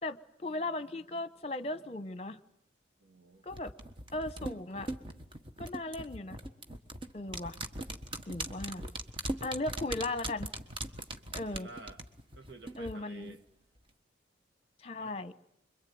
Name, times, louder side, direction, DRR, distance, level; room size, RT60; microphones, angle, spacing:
voice 1, 0.0-2.4 3.4-3.7 4.1-4.9 5.6-6.4 7.1-7.6 8.3-8.9 9.4-10.5 11.3-11.7 12.8-13.4 14.8-15.3, left 2 dB, 35° left, 14 dB, 1.0 m, -37 dB
voice 2, 3.0-3.5 11.4-12.0 12.3-13.4 15.0-15.1, right 3 dB, 85° right, 5 dB, 2.1 m, -50 dB
sound 1, 3.5-12.9 13.2-13.3, right 1 dB, 30° right, 1.4 m, -40 dB
26.0 x 23.0 x 9.4 m, 0.73 s
head